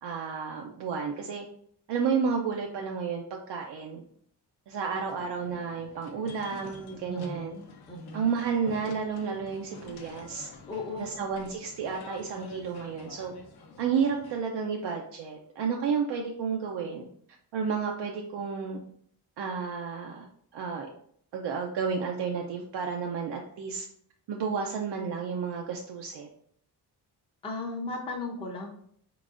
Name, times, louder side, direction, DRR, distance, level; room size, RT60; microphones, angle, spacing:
voice 1, 0.0-1.5 1.9-4.0 4.7-7.5 8.1-10.5 11.0-13.3 13.8-17.1 17.5-18.8 19.4-20.3 20.5-20.9 21.3-23.9 24.3-26.3, right 6 dB, 80° right, 1 dB, 0.6 m, -31 dB
sound 1, 5.1-14.4, left 4 dB, 65° left, 0.7 m, -48 dB
voice 2, 7.1-8.3 10.7-11.1 27.4-28.7, left 2 dB, 15° left, -2 dB, 0.5 m, -36 dB
4.6 x 3.8 x 2.4 m, 0.64 s
wide cardioid pair, 170°, 41 cm